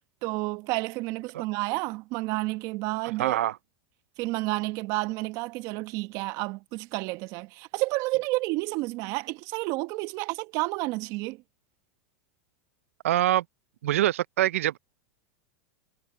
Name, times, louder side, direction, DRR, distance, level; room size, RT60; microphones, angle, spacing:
voice 1, 0.2-3.4 4.2-11.4, right 22 dB, 50° right, 1.2 m, -30 dB
voice 2, 3.2-3.6 13.0-13.4 13.8-14.8, right 13 dB, 80° right, 0.6 m, -24 dB
hypercardioid pair, 115°, 7 cm